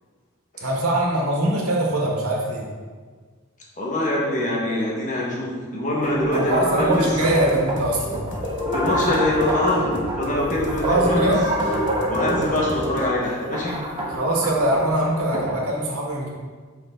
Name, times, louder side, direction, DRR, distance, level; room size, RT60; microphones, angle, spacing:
voice 1, 0.6-2.7 6.3-8.2 10.7-11.5 14.2-16.3, right 1 dB, 85° right, -2 dB, 1.7 m, -22 dB
voice 2, 3.8-7.1 8.7-11.3 12.1-13.8, left 1 dB, 35° left, -4 dB, 1.6 m, -24 dB
sound 1, 6.0-15.6, equal, 25° right, 1.3 m, -26 dB
sound 2, 7.0-13.1, left 1 dB, 55° left, 1.0 m, -37 dB
7.7 x 5.7 x 3.7 m, 1.5 s
head